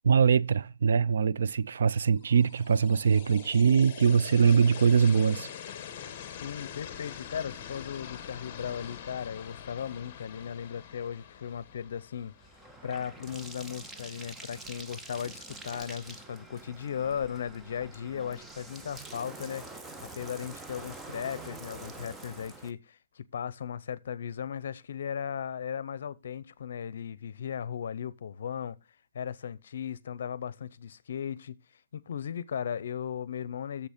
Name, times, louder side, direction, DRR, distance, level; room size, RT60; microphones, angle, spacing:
voice 1, 0.0-5.5, right 6 dB, 75° right, 0.4 m, -23 dB
sound 1, 2.2-13.3, left 9 dB, 30° left, 1.1 m, -44 dB
voice 2, 6.3-12.3 12.8-19.7 20.1-28.8 29.1-31.6 31.9-33.9, left 8 dB, 65° left, 0.6 m, -37 dB
Bathtub (filling or washing), 11.3-22.7, right 2 dB, 5° right, 0.5 m, -46 dB
8.1 x 7.0 x 5.0 m
hypercardioid pair, 170°, 0 cm